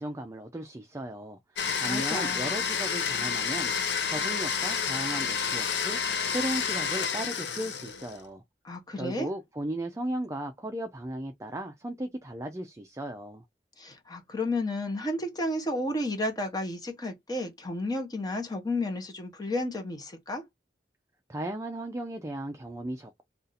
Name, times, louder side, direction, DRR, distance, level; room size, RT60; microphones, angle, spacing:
voice 1, 0.0-8.4 9.0-13.4 21.3-23.2, right 1 dB, 15° right, 0.4 m, -36 dB
Domestic sounds home sounds, 1.6-8.2, left 6 dB, 75° left, 0.6 m, -30 dB
voice 2, 1.8-2.5 8.6-9.3 13.8-20.4, left 1 dB, 25° left, 0.9 m, -32 dB
2.7 x 2.4 x 3.9 m
head